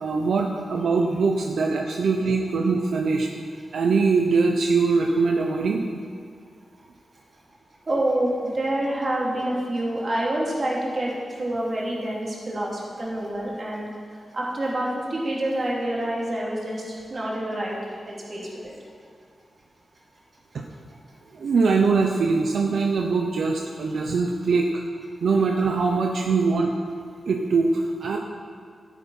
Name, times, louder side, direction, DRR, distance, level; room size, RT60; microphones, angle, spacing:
voice 1, 0.0-3.3 3.7-5.8 20.5-20.6 21.3-24.8 25.2-26.7 27.3-28.2, right 4 dB, 75° right, 2 dB, 0.8 m, -22 dB
voice 2, 7.9-11.1 11.4-13.9 14.3-16.8 17.1-17.7 18.3-18.7, right 1 dB, 35° right, -4 dB, 2.7 m, -27 dB
12.5 x 9.5 x 5.6 m, 2.2 s
wide cardioid pair, 165°, 0 cm